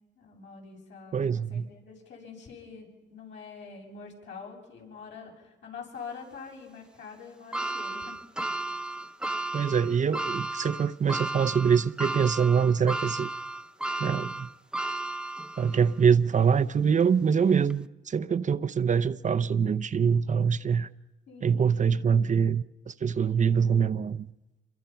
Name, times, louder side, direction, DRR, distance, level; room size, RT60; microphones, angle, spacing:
voice 1, 0.2-8.2 21.3-21.6 21.9-22.1, left 5 dB, 65° left, 7.6 m, -45 dB
voice 2, 1.1-1.7 9.5-13.3 14.0-14.5 15.6-20.9 21.4-24.3, right 6 dB, 40° right, 0.7 m, -24 dB
sound 1, 7.5-15.9 16.4-16.5 17.6-17.7, right 2 dB, 5° right, 0.7 m, -34 dB
27.5 x 23.5 x 5.8 m
cardioid pair, 90°, 20 cm